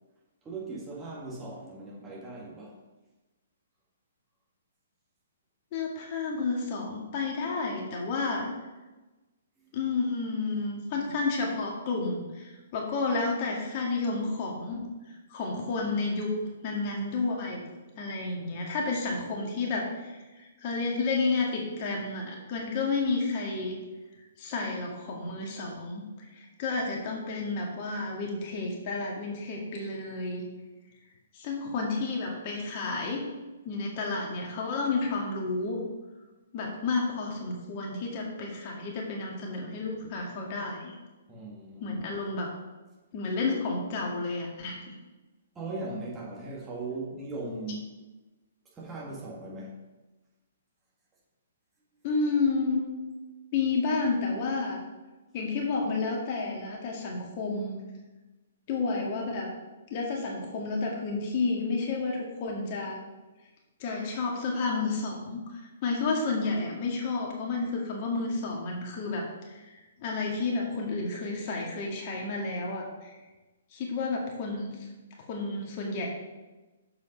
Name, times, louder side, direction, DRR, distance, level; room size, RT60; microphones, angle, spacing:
voice 1, 0.4-2.8 41.3-42.0 45.5-47.8 48.7-49.8, right 2 dB, 15° right, -4 dB, 2.2 m, -38 dB
voice 2, 5.7-8.5 9.7-16.3 16.6-17.7 18.0-23.8 24.4-26.0 26.3-30.5 31.3-33.2 33.6-35.8 36.5-40.9 41.8-42.5 43.1-44.9 52.0-52.8 53.5-54.8 55.3-57.8 58.7-59.5 59.9-63.0 63.8-73.2 73.7-74.9 75.3-76.1, left 3 dB, 40° left, -1 dB, 1.9 m, -31 dB
6.9 x 5.5 x 5.5 m, 1.1 s
hypercardioid pair, 130°, 0 cm